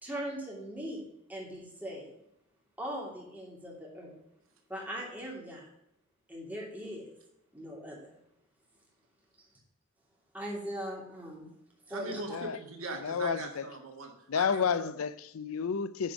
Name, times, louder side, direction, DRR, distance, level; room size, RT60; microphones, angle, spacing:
voice 1, 0.0-1.0 1.3-2.1 2.8-4.1 4.7-5.7 6.3-7.1 7.5-8.1 10.3-11.5 11.9-12.4, equal, 10° right, 2.8 m, -40 dB
voice 2, 11.9-15.0, right 2 dB, 80° right, 1.8 m, -41 dB
voice 3, 13.0-13.6 14.3-16.1, left 6 dB, 90° left, 0.5 m, -31 dB
9.9 x 5.1 x 6.1 m
head